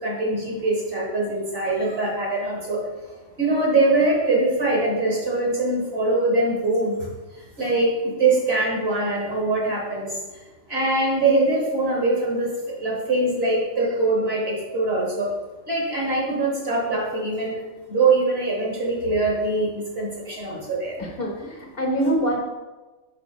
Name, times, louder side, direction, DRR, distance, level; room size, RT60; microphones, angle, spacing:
voice 1, 0.0-2.8 3.4-7.0 7.6-10.1 10.7-15.3 15.7-17.6 17.9-21.0, right 2 dB, 50° right, -3 dB, 1.9 m, -23 dB
voice 2, 21.0-22.4, right 1 dB, 50° left, 0 dB, 1.2 m, -24 dB
5.9 x 4.8 x 4.3 m, 1.2 s
omnidirectional pair, 1.3 m